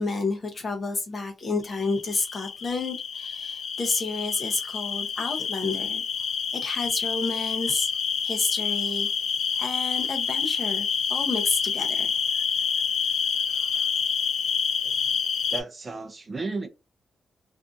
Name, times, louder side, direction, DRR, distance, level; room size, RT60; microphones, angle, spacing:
voice 1, 0.0-6.0 6.5-7.9 8.2-9.1 9.6-12.1, left 3 dB, 35° left, 0.7 m, -30 dB
sound 1, 1.7-15.6, left 6 dB, 65° left, 0.3 m, -28 dB
voice 2, 15.5-16.7, right 3 dB, 30° right, 0.5 m, -33 dB
2.6 x 2.4 x 2.4 m
wide cardioid pair, 140°, 0 cm